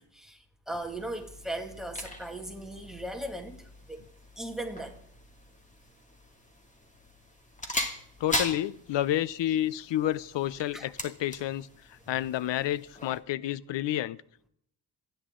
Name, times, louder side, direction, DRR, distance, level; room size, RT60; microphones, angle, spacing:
voice 1, 0.0-4.0 4.4-5.0 10.7-10.9, right 1 dB, ahead, 2.1 m, -38 dB
sound 1, 0.7-13.2, left 1 dB, 15° left, 2.6 m, -40 dB
voice 2, 8.2-11.7 12.1-14.2, left 12 dB, 90° left, 0.7 m, -30 dB
27.5 x 10.5 x 3.8 m
cardioid pair, 115°, 42 cm